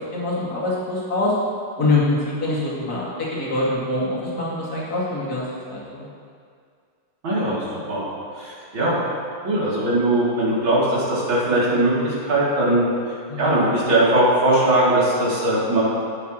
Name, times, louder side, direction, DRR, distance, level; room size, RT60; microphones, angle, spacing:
voice 1, 0.0-1.3 1.8-6.0 13.3-13.5, left 2 dB, 45° left, -7 dB, 2.5 m, -24 dB
voice 2, 7.2-8.0 8.4-9.0 9.4-12.8 13.4-15.8, right 1 dB, 60° right, -8 dB, 3.3 m, -20 dB
16.5 x 5.8 x 3.0 m, 2.2 s
omnidirectional pair, 2.4 m